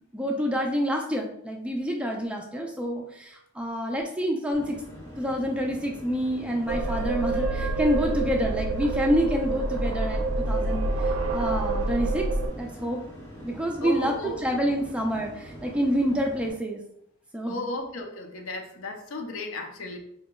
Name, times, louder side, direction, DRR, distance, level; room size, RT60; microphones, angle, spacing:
voice 1, 0.1-4.8 5.2-12.3 12.5-13.0 13.4-16.8 17.3-17.6, equal, 5° right, 1 dB, 0.3 m, -28 dB
sound 1, 4.5-16.5, equal, 15° left, 0.8 m, -44 dB
sound 2, 6.7-12.5, right 2 dB, 75° right, 0.5 m, -27 dB
voice 2, 13.8-14.4 17.5-20.0, left 2 dB, 70° left, 4 dB, 0.5 m, -34 dB
4.1 x 2.8 x 2.2 m, 0.72 s
head